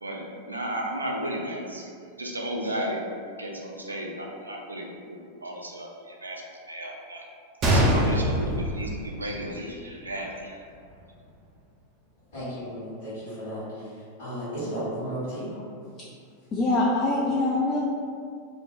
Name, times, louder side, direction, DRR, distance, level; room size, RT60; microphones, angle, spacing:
voice 1, 0.0-1.9 2.2-3.0 3.4-4.9 5.4-7.2 7.7-10.6, right 1 dB, 80° right, -1 dB, 0.4 m, -34 dB
Gunshot gunfire, 7.6-9.6 9.9-10.0 10.7-10.9, equal, 30° right, 0.5 m, -23 dB
voice 2, 12.3-15.5, equal, 50° left, -13 dB, 1.2 m, -34 dB
voice 3, 16.5-17.8, left 2 dB, 25° left, -5 dB, 0.3 m, -23 dB
2.5 x 2.1 x 3.0 m, 2.3 s
figure-of-eight pair, 90°, 0 cm